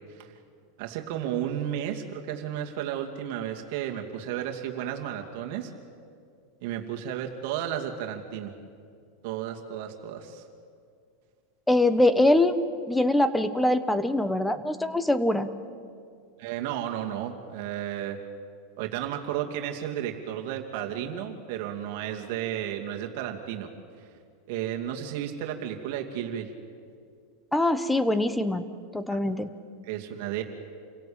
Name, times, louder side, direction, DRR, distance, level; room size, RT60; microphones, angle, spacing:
voice 1, 0.8-5.7 6.6-8.5 9.2-10.4 16.4-18.2 18.8-23.7 24.0-24.1 24.5-26.5 29.1-29.2 29.8-30.4, right 10 dB, 60° right, 3 dB, 2.5 m, -33 dB
voice 2, 11.7-12.6 12.9-15.5 27.5-28.6 28.9-29.5, left 1 dB, 5° left, 12 dB, 1.1 m, -23 dB
28.0 x 17.0 x 8.8 m, 2.3 s
supercardioid pair, 140°, 0 cm